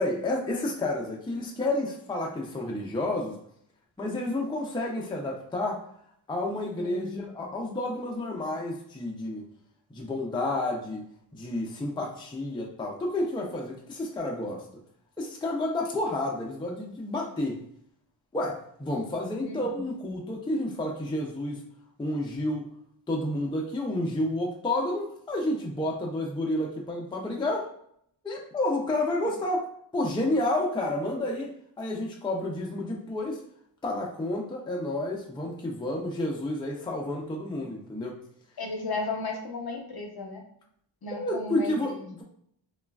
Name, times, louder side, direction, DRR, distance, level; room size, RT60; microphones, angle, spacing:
voice 1, 0.0-3.4 4.0-5.8 6.3-9.4 9.9-11.0 11.3-14.7 15.2-17.6 18.3-21.6 22.0-22.7 23.1-27.7 28.2-29.7 29.9-33.4 33.8-38.1 41.2-42.2, left 1 dB, 10° left, 0 dB, 0.4 m, -30 dB
voice 2, 6.8-7.3 19.4-19.8 38.6-40.4 41.0-42.1, left 3 dB, 50° left, 2 dB, 0.7 m, -35 dB
3.1 x 2.3 x 2.2 m, 0.68 s
cardioid pair, 60°, 47 cm